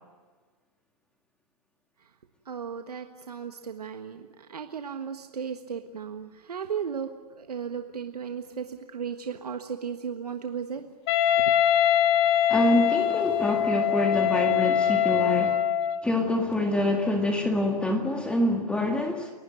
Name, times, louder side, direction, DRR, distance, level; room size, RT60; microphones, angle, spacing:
voice 1, 2.4-10.8 11.4-11.5, right 7 dB, 75° right, 6 dB, 1.6 m, -35 dB
Wind instrument woodwind instrument, 11.1-16.1, left 10 dB, 40° left, 2.7 m, -23 dB
voice 2, 12.5-15.6 16.0-19.3, left 1 dB, 5° left, 3 dB, 1.9 m, -26 dB
29.5 x 16.0 x 9.3 m, 1.4 s
hypercardioid pair, 125°, 20 cm